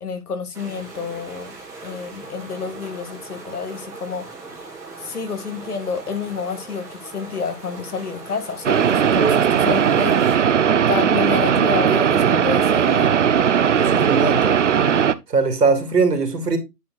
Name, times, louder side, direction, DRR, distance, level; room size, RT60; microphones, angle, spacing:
voice 1, 0.0-1.5 1.8-4.3 5.0-10.5 10.9-13.1, left 5 dB, 70° left, 1.9 m, -29 dB
sound 1, 0.5-10.4, right 3 dB, 5° right, 1.5 m, -39 dB
sound 2, 8.6-15.1, right 8 dB, 50° right, 0.6 m, -18 dB
voice 2, 13.7-14.6 15.3-16.6, right 4 dB, 80° right, 2.7 m, -20 dB
9.3 x 4.3 x 3.9 m
hypercardioid pair, 150°, 47 cm